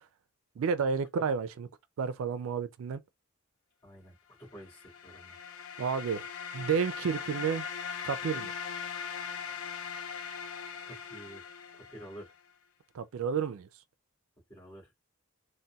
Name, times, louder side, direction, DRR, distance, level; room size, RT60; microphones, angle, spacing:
voice 1, 0.6-1.7 2.0-3.0 5.8-7.6 8.0-8.5 12.9-13.7, right 6 dB, 70° right, 0.3 m, -31 dB
voice 2, 3.8-5.4 10.8-11.5 11.7-12.3 14.5-14.9, right 1 dB, 25° left, 1.8 m, -49 dB
sound 1, 4.6-12.3, left 6 dB, 75° left, 0.5 m, -40 dB
3.9 x 2.1 x 2.3 m
head